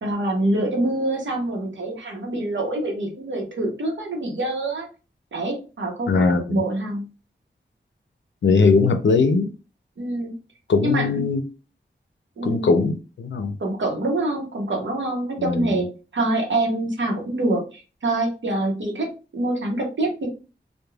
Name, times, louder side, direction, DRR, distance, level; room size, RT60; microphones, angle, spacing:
voice 1, 0.0-4.9 5.3-7.0 10.0-10.3 10.8-11.1 12.4-12.8 13.6-17.6 18.0-20.3, right 2 dB, 85° right, 0.8 m, -25 dB
voice 2, 6.1-6.6 8.4-9.5 10.7-11.4 12.4-13.6 15.4-15.8, left 4 dB, 85° left, 0.5 m, -20 dB
3.1 x 2.2 x 2.3 m
cardioid pair, 45°, 19 cm